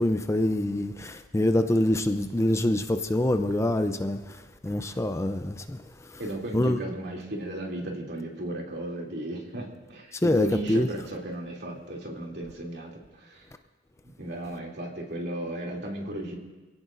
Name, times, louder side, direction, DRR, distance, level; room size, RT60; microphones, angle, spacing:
voice 1, 0.0-4.2 4.6-5.8 6.5-6.8 10.2-10.9, left 1 dB, 15° left, 0.5 m, -25 dB
voice 2, 6.2-13.5 14.2-16.3, right 1 dB, 60° right, 2.8 m, -35 dB
27.0 x 16.5 x 2.6 m
head